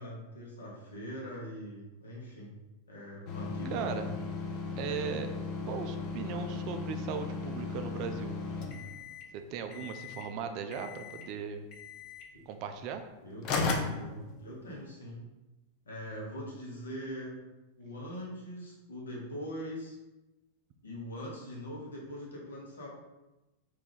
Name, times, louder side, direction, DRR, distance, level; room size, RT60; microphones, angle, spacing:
voice 1, 0.0-2.5 2.9-4.1 12.3-12.4 13.2-15.2 15.8-17.4 17.8-20.0 20.8-22.9, equal, 70° left, -3 dB, 1.1 m, -42 dB
sound 1, 3.3-9.3 9.7-10.3 10.7-11.3 11.7-12.3 13.1-13.2 13.4-14.8, left 4 dB, 40° left, 0.5 m, -36 dB
voice 2, 3.7-4.1 4.8-5.3 5.7-8.3 9.3-11.7 12.5-13.0, right 6 dB, 40° right, 7 dB, 0.4 m, -37 dB
3.4 x 2.8 x 3.9 m, 1.0 s
figure-of-eight pair, 90°, 0 cm